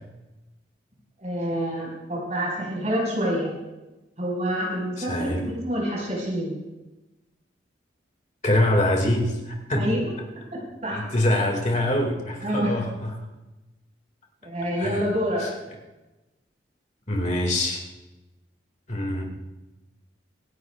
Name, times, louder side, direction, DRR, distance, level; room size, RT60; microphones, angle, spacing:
voice 1, 1.2-3.5 4.2-6.5 9.7-10.1 10.8-11.0 12.4-12.7 14.4-15.4, equal, 35° right, -3 dB, 5.1 m, -27 dB
voice 2, 5.0-5.5 8.4-10.0 10.9-13.2 14.8-15.0 15.4-15.5 17.1-17.8 18.9-19.2, left 1 dB, 40° left, 1 dB, 2.1 m, -24 dB
26.0 x 11.0 x 2.4 m, 1.0 s
head